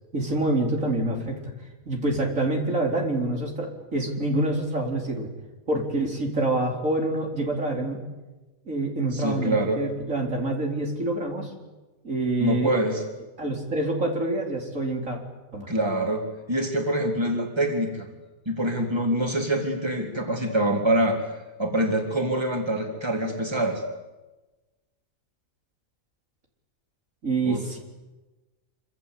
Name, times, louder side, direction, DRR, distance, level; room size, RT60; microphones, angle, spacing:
voice 1, 0.1-1.4 1.9-5.3 5.7-8.0 8.7-11.5 12.0-12.7 13.4-15.2 15.5-15.7 27.2-27.8, right 2 dB, 65° right, 0 dB, 4.8 m, -26 dB
voice 2, 9.1-9.8 12.4-13.0 15.7-16.2 16.5-18.1 18.5-21.3 21.6-23.8 27.4-27.6, right 1 dB, 20° right, 2 dB, 3.7 m, -25 dB
26.5 x 26.0 x 8.4 m, 1.1 s
omnidirectional pair, 1.4 m